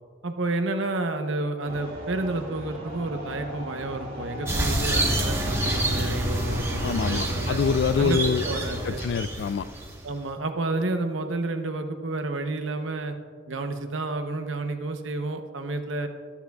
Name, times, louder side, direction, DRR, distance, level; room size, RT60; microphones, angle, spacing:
voice 1, 0.2-7.6 8.0-9.0 10.0-13.1 13.5-16.1, right 2 dB, 80° right, 7 dB, 0.8 m, -30 dB
sound 1, 1.6-8.9, equal, 50° right, 2.3 m, -38 dB
sound 2, 4.5-10.2, right 1 dB, 15° right, 1.2 m, -27 dB
voice 2, 6.8-8.4 9.0-9.7, left 6 dB, 60° left, 15 dB, 0.3 m, -25 dB
14.0 x 12.5 x 2.4 m, 2.1 s
head